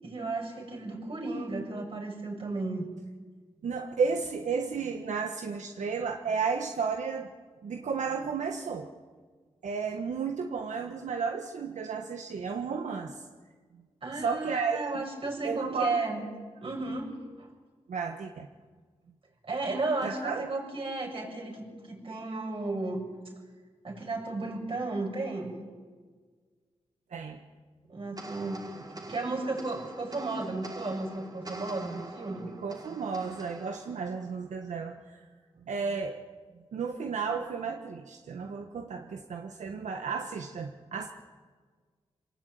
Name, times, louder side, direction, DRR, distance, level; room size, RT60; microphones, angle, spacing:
voice 1, 0.0-2.9 14.0-16.2 16.6-17.1 17.4-17.5 19.4-23.1 23.8-25.6 27.9-28.6 28.9-32.5, right 3 dB, 50° right, 0 dB, 7.6 m, -34 dB
voice 2, 3.6-7.3 7.6-8.9 9.6-13.2 13.7-13.8 14.2-15.0 15.4-15.9 17.9-18.5 20.0-20.5 27.1-27.4 32.6-35.2 35.7-36.2 36.7-41.1, right 5 dB, 85° right, 3 dB, 1.4 m, -33 dB
sound 1, 28.2-34.8, right 2 dB, 35° right, 3.1 m, -45 dB
27.0 x 18.5 x 9.4 m, 1.5 s
wide cardioid pair, 90°, 12 cm